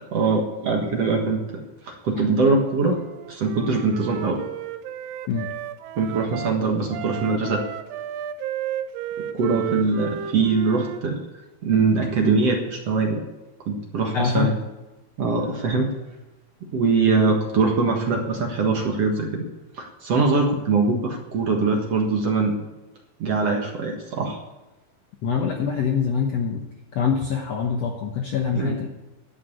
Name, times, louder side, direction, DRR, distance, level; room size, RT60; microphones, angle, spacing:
voice 1, 0.1-1.4 1.8-3.0 3.3-4.4 6.0-7.6 9.3-11.2 11.6-13.2 13.7-14.5 15.2-15.9 16.7-19.4 19.8-22.6 23.2-24.4 28.5-28.8, right 4 dB, 50° right, 1 dB, 2.1 m, -22 dB
Wind instrument woodwind instrument, 2.9-6.5 6.9-11.0, right 11 dB, 80° right, 2.2 m, -33 dB
voice 2, 14.1-14.6 25.2-26.7 26.9-28.9, left 6 dB, 65° left, 2 dB, 1.6 m, -24 dB
11.5 x 8.4 x 8.5 m, 1.0 s
omnidirectional pair, 4.3 m